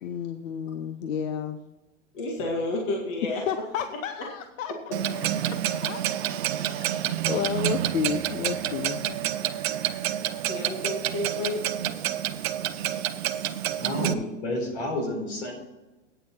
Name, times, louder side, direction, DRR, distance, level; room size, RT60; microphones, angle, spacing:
voice 1, 0.0-1.6 3.4-4.7 5.7-6.2 6.5-6.9 7.3-9.2, left 8 dB, 80° left, 10 dB, 0.8 m, -31 dB
voice 2, 2.1-3.4 6.6-6.7 9.9-11.9 13.1-13.2 13.7-13.8, left 2 dB, 40° left, 0 dB, 1.9 m, -32 dB
Clock, 4.9-14.1, right 11 dB, 55° right, 0.7 m, -28 dB
voice 3, 13.8-15.5, left 1 dB, 60° left, 1 dB, 4.2 m, -30 dB
9.3 x 7.6 x 5.8 m, 1.1 s
supercardioid pair, 170°, 38 cm